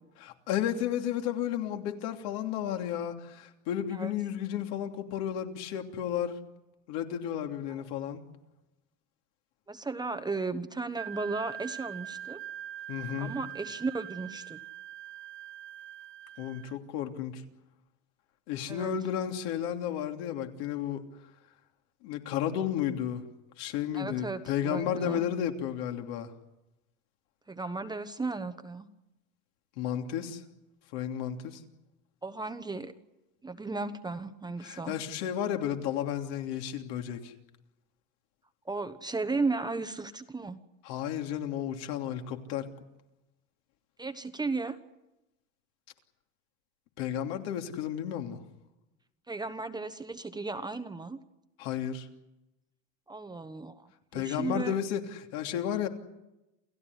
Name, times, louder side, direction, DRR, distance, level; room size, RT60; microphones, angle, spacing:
voice 1, 0.2-6.4 6.9-8.2 12.9-13.3 16.4-17.4 18.5-21.0 22.0-23.2 23.6-26.3 29.8-30.4 30.9-31.6 34.6-37.3 40.8-42.7 47.0-48.4 51.6-52.1 54.1-55.9, left 10 dB, 65° left, 4 dB, 3.1 m, -33 dB
voice 2, 9.7-12.4 13.2-14.6 18.7-18.9 23.9-25.2 27.5-28.9 32.2-32.9 33.4-35.0 38.7-40.6 44.0-44.8 49.3-51.2 53.1-53.9 54.1-54.7, right 3 dB, 10° right, 9 dB, 1.1 m, -35 dB
Wind instrument woodwind instrument, 10.9-16.8, right 11 dB, 30° right, 0.8 m, -43 dB
29.0 x 15.0 x 9.8 m, 0.96 s
supercardioid pair, 130°, 40 cm